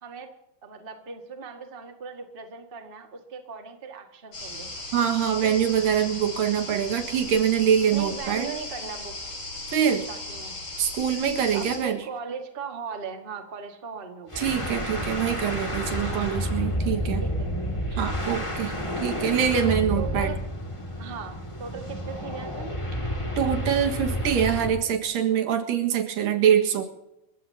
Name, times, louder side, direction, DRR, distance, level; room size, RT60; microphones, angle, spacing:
voice 1, 0.0-0.3 0.6-4.7 5.4-5.6 7.9-9.1 10.1-10.6 11.5-14.4 17.2-17.5 19.9-20.4 21.0-22.7, right 6 dB, 25° right, 4 dB, 1.4 m, -38 dB
sound 1, 4.3-11.8, left 2 dB, 50° left, 7.2 m, -37 dB
voice 2, 4.9-8.5 9.7-10.1 10.8-12.0 14.4-17.2 17.9-20.3 23.4-26.8, right 8 dB, 85° right, 4 dB, 3.4 m, -24 dB
sound 2, 14.3-24.8, equal, 10° left, 1.7 m, -30 dB
29.0 x 15.5 x 2.8 m, 0.87 s
omnidirectional pair, 3.8 m